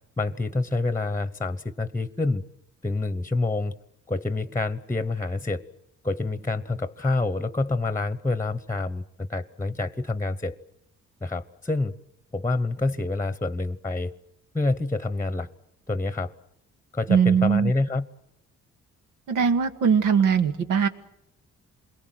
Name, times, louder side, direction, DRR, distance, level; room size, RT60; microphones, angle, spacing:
voice 1, 0.2-2.4 2.8-3.7 4.1-5.6 6.0-10.5 11.2-11.9 12.3-14.1 14.5-15.5 15.9-16.3 16.9-18.1, left 3 dB, 10° left, 15 dB, 1.0 m, -27 dB
voice 2, 17.1-17.7 19.3-20.9, right 7 dB, 90° right, 7 dB, 1.9 m, -20 dB
27.5 x 22.0 x 7.8 m, 0.76 s
cardioid pair, 90°, 30 cm